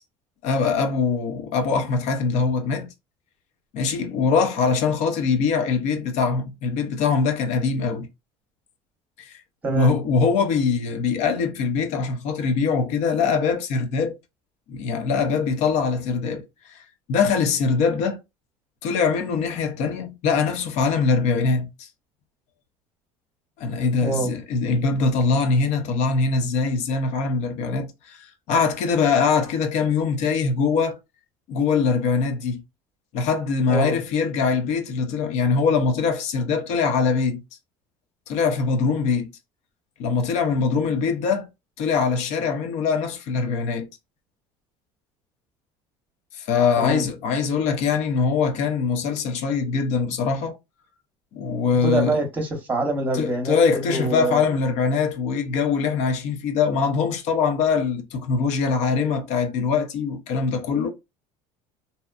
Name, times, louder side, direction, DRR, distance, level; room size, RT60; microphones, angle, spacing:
voice 1, 0.4-2.9 3.7-8.1 9.2-9.4 9.7-14.1 14.7-16.8 17.1-18.2 18.8-21.9 23.6-28.2 28.5-31.0 31.5-32.6 33.1-37.4 38.3-39.3 40.0-41.5 41.8-43.9 46.3-50.6 51.3-52.2 53.1-60.9, left 5 dB, 65° left, 0.6 m, -22 dB
voice 2, 9.6-9.9 24.0-24.3 33.7-34.0 46.8-47.1 51.8-54.4, right 1 dB, 15° right, 0.8 m, -25 dB
2.7 x 2.1 x 2.3 m
cardioid pair, 115°, 12 cm